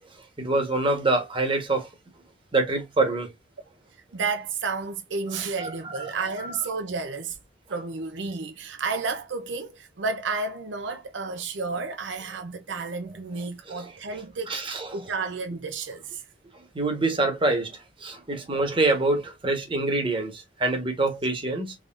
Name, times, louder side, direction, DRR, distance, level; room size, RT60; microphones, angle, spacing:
voice 1, 0.4-1.9 2.5-3.3 5.6-5.7 6.0-6.1 6.4-6.5 13.7-13.9 14.5-14.9 16.7-21.7, right 2 dB, 30° right, 1.3 m, -25 dB
voice 2, 4.1-7.4 7.7-16.2, right 4 dB, 75° right, 0.6 m, -31 dB
3.7 x 3.5 x 2.5 m
head